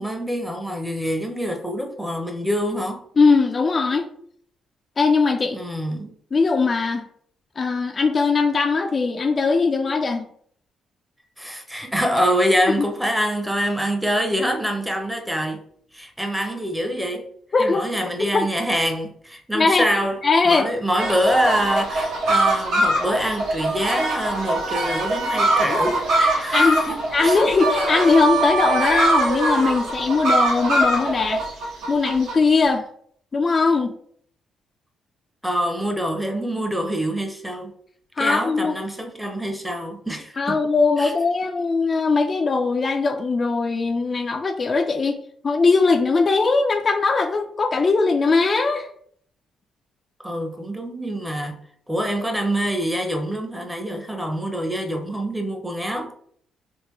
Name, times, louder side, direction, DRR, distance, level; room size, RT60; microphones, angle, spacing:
voice 1, 0.0-3.1 5.5-6.1 11.4-15.6 15.9-17.3 17.6-20.2 20.4-27.4 35.4-37.7 38.2-40.6 41.0-41.1 50.2-51.6 51.9-56.1, equal, 5° right, 0.6 m, -25 dB
voice 2, 3.2-4.1 5.0-5.6 6.3-7.1 7.6-10.3 12.8-12.9 17.5-17.9 18.3-18.5 19.5-19.9 20.2-20.7 25.7-31.4 31.9-32.9 33.3-33.9 38.2-38.8 40.4-48.9, left 4 dB, 35° left, 0.3 m, -20 dB
sound 1, 21.0-32.4, right 1 dB, 80° right, 1.1 m, -22 dB
3.5 x 2.5 x 3.0 m
cardioid pair, 90°, 0 cm